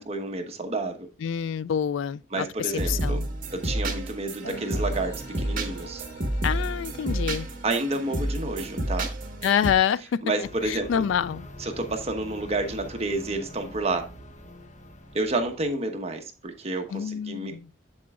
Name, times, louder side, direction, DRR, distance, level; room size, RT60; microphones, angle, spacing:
voice 1, 0.1-1.1 2.3-3.2 3.5-6.0 7.6-9.1 10.2-11.0 11.6-14.1 15.1-17.5, right 2 dB, 35° right, 1.1 m, -30 dB
voice 2, 1.2-3.3 6.4-7.5 9.4-11.5 16.9-17.7, left 8 dB, 90° left, 0.3 m, -27 dB
sound 1, 2.7-9.7, right 1 dB, 50° right, 1.5 m, -30 dB
sound 2, 4.4-10.4, right 2 dB, 65° left, 1.4 m, -45 dB
sound 3, 10.4-15.7, left 1 dB, 40° left, 0.9 m, -44 dB
7.7 x 7.5 x 2.4 m
head